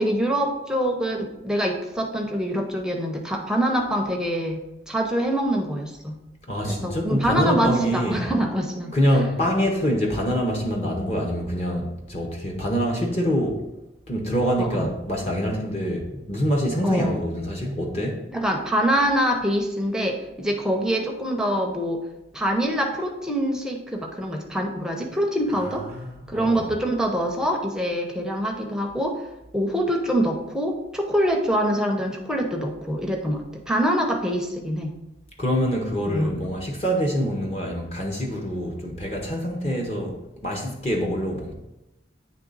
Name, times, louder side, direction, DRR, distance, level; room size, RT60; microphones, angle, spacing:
voice 1, 0.0-6.2 6.6-8.9 14.6-14.9 16.8-17.2 18.3-22.0 22.3-25.9 26.3-29.2 29.5-35.0 36.1-36.3, equal, 5° right, 1 dB, 0.6 m, -25 dB
voice 2, 6.5-8.3 8.9-13.6 14.1-18.2 25.9-26.7 35.4-41.5, equal, 35° left, 0 dB, 0.8 m, -25 dB
8.9 x 3.2 x 3.9 m, 0.95 s
head